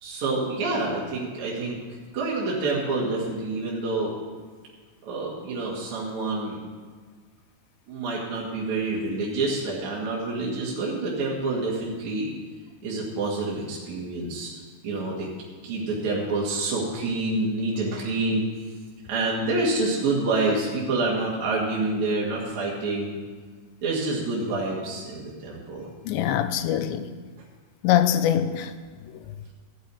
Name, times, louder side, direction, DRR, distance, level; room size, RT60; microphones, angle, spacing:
voice 1, 0.0-1.8 2.1-4.1 5.0-6.6 7.9-12.3 12.8-14.5 14.8-15.3 15.6-18.4 19.1-23.1 23.8-25.9, right 2 dB, 50° right, 2.6 m, -27 dB
voice 2, 26.1-27.1 27.8-28.7, left 10 dB, 85° left, 2.5 m, -23 dB
15.0 x 6.4 x 8.4 m
omnidirectional pair, 5.7 m